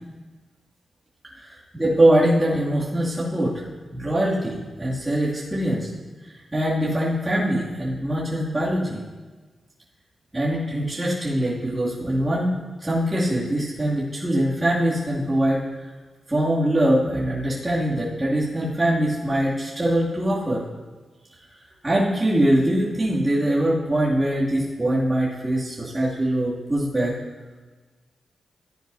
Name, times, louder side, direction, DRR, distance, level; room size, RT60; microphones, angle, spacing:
voice 1, 1.4-3.5 3.9-5.9 6.5-9.0 10.3-12.5 12.8-15.7 16.3-20.6 21.8-27.1, right 1 dB, 20° right, -8 dB, 2.7 m, -22 dB
14.0 x 9.8 x 2.8 m, 1.3 s
cardioid pair, 60°, 0 cm